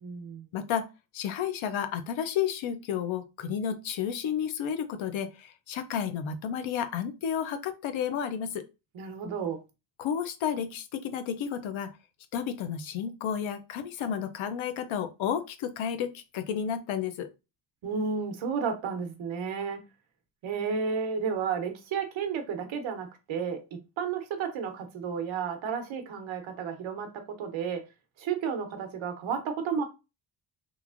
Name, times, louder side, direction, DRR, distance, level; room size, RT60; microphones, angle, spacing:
voice 1, 0.0-0.4 8.9-9.6 17.8-19.8 20.4-27.1 27.4-27.8 28.2-29.8, right 6 dB, 70° right, 0.8 m, -32 dB
voice 2, 0.5-0.9 1.1-8.6 10.0-11.9 12.3-17.3, left 8 dB, 75° left, 0.6 m, -32 dB
3.0 x 2.4 x 2.4 m
wide cardioid pair, 180°, 48 cm